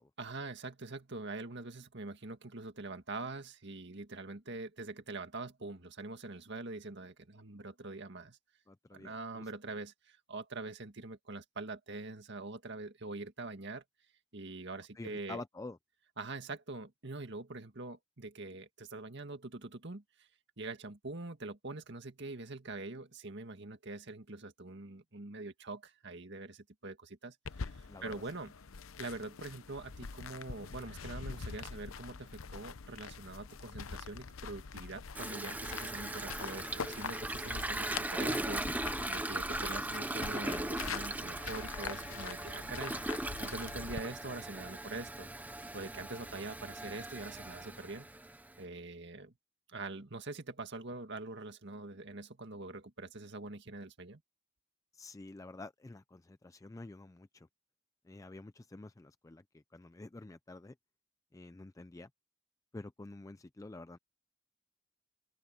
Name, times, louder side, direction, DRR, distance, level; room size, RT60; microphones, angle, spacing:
voice 1, 0.2-8.4 8.9-13.8 14.3-15.4 16.2-20.3 20.6-28.5 29.0-45.3 45.7-48.1 48.6-49.3 49.7-54.2, right 3 dB, 60° right, 1.9 m, -44 dB
voice 2, 8.7-9.5 14.9-15.8 27.8-28.2 54.9-57.5 58.0-60.8 61.3-62.1 62.7-64.0, left 2 dB, 15° left, 0.4 m, -48 dB
sound 1, 27.5-44.0, left 5 dB, 90° left, 0.7 m, -44 dB
Toilet flush, 35.1-48.6, right 1 dB, 10° right, 0.7 m, -39 dB
open air
head